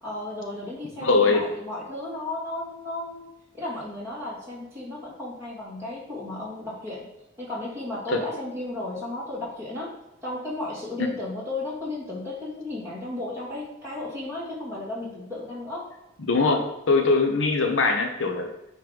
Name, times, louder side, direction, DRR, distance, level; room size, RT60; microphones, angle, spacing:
voice 1, 0.0-3.3 3.5-7.1 7.4-9.9 10.2-15.9 16.4-16.6, left 2 dB, 15° right, -7 dB, 2.7 m, -34 dB
voice 2, 1.0-1.4 8.1-8.2 11.0-11.1 16.3-18.5, left 3 dB, 70° left, 5 dB, 0.8 m, -22 dB
9.2 x 3.3 x 5.2 m, 0.91 s
head